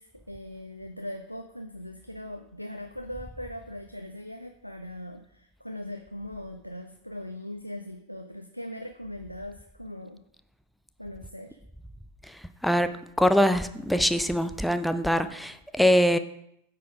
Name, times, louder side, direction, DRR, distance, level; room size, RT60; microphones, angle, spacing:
voice 1, 0.0-10.2 11.0-11.6, left 1 dB, 90° left, 4 dB, 0.5 m, -40 dB
voice 2, 12.3-12.9 13.2-16.2, equal, ahead, 11 dB, 0.4 m, -23 dB
8.4 x 4.2 x 4.9 m, 0.78 s
figure-of-eight pair, 90°, 0 cm